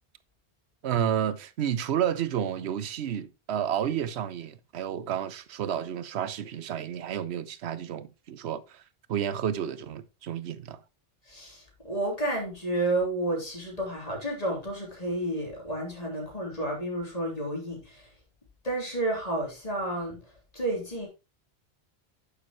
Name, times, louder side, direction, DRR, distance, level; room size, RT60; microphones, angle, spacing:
voice 1, 0.8-8.8 9.1-10.8, right 9 dB, 85° right, 1.0 m, -31 dB
voice 2, 11.3-18.1 18.6-20.2 20.5-21.1, right 1 dB, 35° left, 3.4 m, -31 dB
9.1 x 6.9 x 3.0 m
omnidirectional pair, 1.1 m